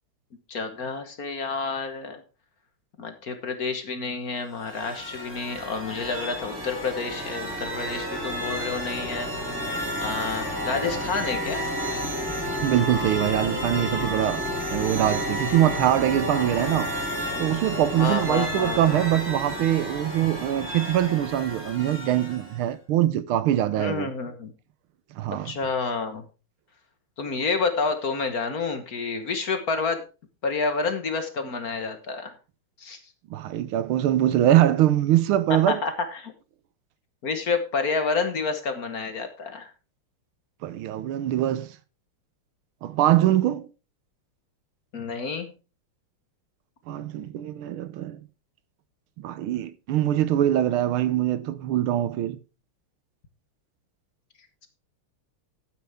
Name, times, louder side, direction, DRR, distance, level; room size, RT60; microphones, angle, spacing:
voice 1, 0.5-2.2 3.0-9.5 10.0-11.7 18.0-19.1 23.8-24.5 25.3-26.2 27.2-30.0 30.4-32.3 32.8-33.0 35.5-36.3 37.2-39.7 44.9-45.5, left 4 dB, 50° left, 1.5 m, -29 dB
sound 1, 4.4-22.6, equal, 5° right, 3.6 m, -31 dB
voice 2, 12.6-14.4 14.7-16.9 17.4-24.1 25.2-25.5 33.3-35.8 40.6-41.7 42.8-43.7 46.9-48.2 49.2-52.4, right 12 dB, 75° right, 1.5 m, -23 dB
12.0 x 9.4 x 3.5 m
omnidirectional pair, 2.4 m